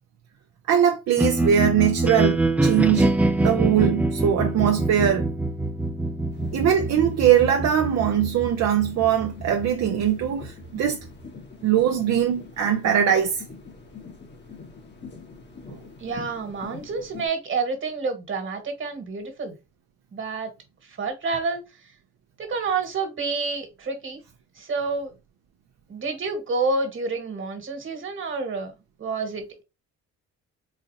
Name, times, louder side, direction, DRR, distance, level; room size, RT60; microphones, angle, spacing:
voice 1, 0.7-5.3 6.5-11.0 11.6-13.4, right 9 dB, 60° right, 0.6 m, -21 dB
sound 1, 1.2-11.3, right 2 dB, 5° right, 0.4 m, -25 dB
sound 2, 6.3-17.3, left 4 dB, 35° left, 1.0 m, -44 dB
voice 2, 16.0-19.6 20.1-20.5 20.9-21.7 22.4-24.2 24.5-25.1 25.9-28.7 29.0-29.6, right 4 dB, 40° right, 1.5 m, -29 dB
4.2 x 2.4 x 2.7 m
cardioid pair, 90°, 30 cm